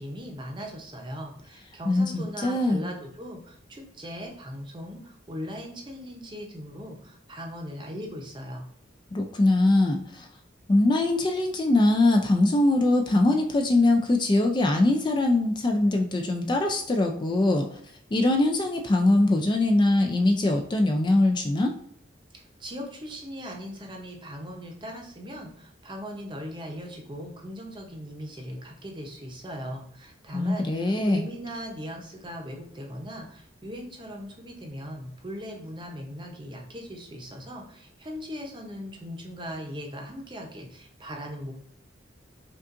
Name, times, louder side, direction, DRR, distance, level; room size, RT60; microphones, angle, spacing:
voice 1, 0.0-8.7 22.3-41.6, equal, 25° right, 1 dB, 0.7 m, -39 dB
voice 2, 1.9-2.9 9.1-10.3 10.7-17.8 18.1-21.7 30.3-31.3, left 2 dB, 25° left, 3 dB, 0.3 m, -22 dB
5.2 x 2.4 x 2.5 m, 0.65 s
head